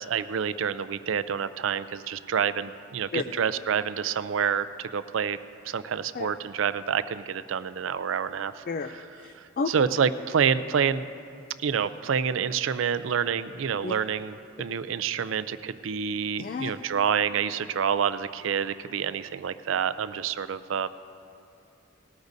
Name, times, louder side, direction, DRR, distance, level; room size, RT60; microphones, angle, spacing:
voice 1, 0.0-5.4 5.6-8.6 9.7-11.1 11.6-20.9, right 7 dB, 75° right, 13 dB, 0.4 m, -28 dB
voice 2, 8.7-9.7 13.8-13.9 16.4-16.7, left 4 dB, 45° left, 8 dB, 0.4 m, -32 dB
19.5 x 13.0 x 2.7 m, 2.6 s
head